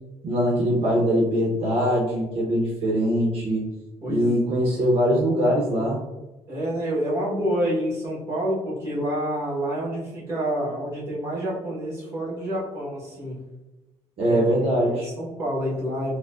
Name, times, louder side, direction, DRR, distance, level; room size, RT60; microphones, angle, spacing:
voice 1, 0.2-3.7 4.1-6.0 14.2-15.1, equal, 60° right, -4 dB, 0.7 m, -22 dB
voice 2, 4.0-4.4 6.5-13.4 14.2-14.4 14.9-16.2, equal, 25° right, -5 dB, 1.2 m, -28 dB
4.6 x 2.1 x 2.4 m, 1.1 s
cardioid pair, 175°, 11 cm